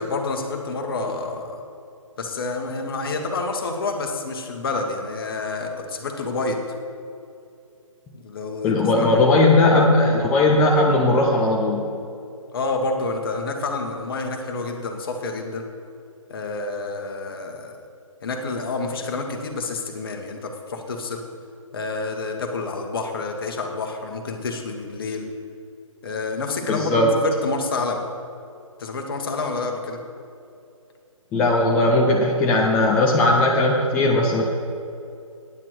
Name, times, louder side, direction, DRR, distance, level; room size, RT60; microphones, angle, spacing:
voice 1, 0.0-1.6 2.2-6.6 8.1-9.3 12.5-15.6 16.3-17.8 18.2-21.2 21.7-25.3 26.0-28.0 28.8-30.0, left 3 dB, 40° left, 4 dB, 1.4 m, -28 dB
voice 2, 8.6-11.9 26.7-27.1 31.3-34.4, left 2 dB, 5° left, -2 dB, 0.4 m, -18 dB
9.6 x 7.4 x 8.1 m, 2.6 s
figure-of-eight pair, 140°, 18 cm